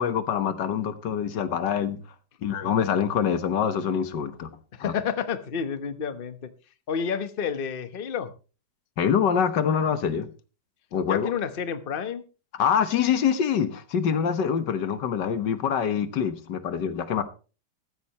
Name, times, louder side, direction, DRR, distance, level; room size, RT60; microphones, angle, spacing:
voice 1, 0.0-2.0 2.4-4.9 9.0-10.3 10.9-11.3 12.6-17.2, left 7 dB, 85° left, 1.8 m, -25 dB
voice 2, 4.7-6.4 6.9-8.3 11.1-12.2, left 7 dB, 35° left, 1.1 m, -30 dB
14.5 x 13.0 x 3.0 m
omnidirectional pair, 1.8 m